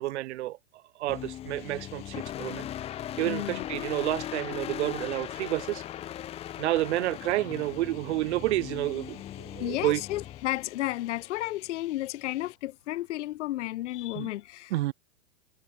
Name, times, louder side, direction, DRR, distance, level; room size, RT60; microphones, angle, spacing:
voice 1, 0.0-2.7 3.2-5.8 6.6-10.0 14.2-14.3 14.7-14.9, right 16 dB, 50° right, 1.7 m, -30 dB
sound 1, 1.1-11.4, left 11 dB, 15° left, 1.0 m, -39 dB
sound 2, 1.6-12.6, left 25 dB, 30° left, 4.0 m, -54 dB
voice 2, 3.2-3.6 9.6-14.9, left 16 dB, 55° left, 1.0 m, -33 dB
hypercardioid pair, 160°, 43 cm